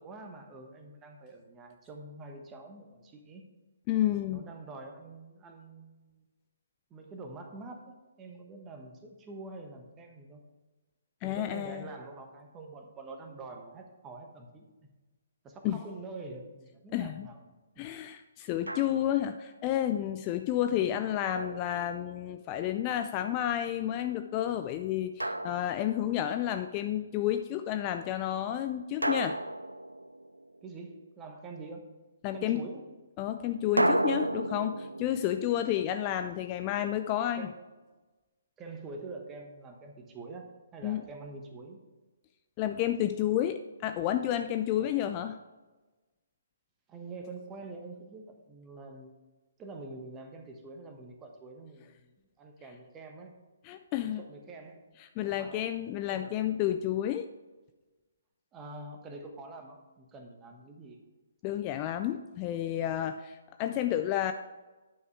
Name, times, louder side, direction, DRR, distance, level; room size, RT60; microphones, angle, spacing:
voice 1, 0.0-3.4 4.1-6.3 6.9-10.4 11.2-14.7 15.4-17.4 17.7-17.9 20.7-21.1 30.6-31.8 32.3-32.8 37.4-37.6 38.6-41.8 44.7-45.2 46.9-49.1 49.6-53.3 54.2-54.8 55.3-55.7 56.1-56.5 58.5-61.0, right 3 dB, 15° right, 3 dB, 1.1 m, -46 dB
voice 2, 3.9-4.5 11.2-11.8 15.6-15.8 16.9-17.3 17.8-29.4 32.2-32.6 33.2-37.5 40.8-41.0 42.6-45.3 53.6-54.3 55.2-57.3 61.4-64.3, left 11 dB, 25° left, 8 dB, 0.3 m, -31 dB
Drum, 18.7-19.3 21.3-22.4 25.2-26.4 29.0-30.7 33.8-36.7, right 1 dB, 85° right, 0.4 m, -33 dB
9.5 x 5.4 x 4.7 m, 1.2 s
figure-of-eight pair, 130°, 0 cm